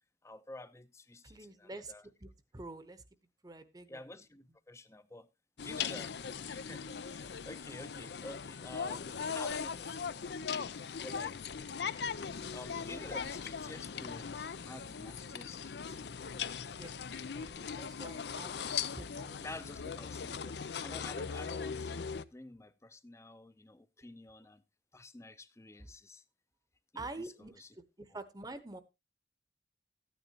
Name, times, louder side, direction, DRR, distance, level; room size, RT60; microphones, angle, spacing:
voice 1, 0.2-2.1 3.9-5.3 5.6-6.1 6.4-10.3 11.0-11.5 12.5-16.0 19.4-24.6 24.9-26.2 26.9-27.3 27.6-27.7, left 2 dB, 15° left, 0.6 m, -50 dB
voice 2, 1.2-1.9 2.2-3.0 3.4-4.0 16.6-17.0 17.3-18.6 19.0-19.4 26.9-28.8, right 2 dB, 20° right, 0.9 m, -47 dB
sound 1, 5.6-22.2, left 6 dB, 65° left, 0.5 m, -39 dB
14.0 x 9.3 x 2.9 m
head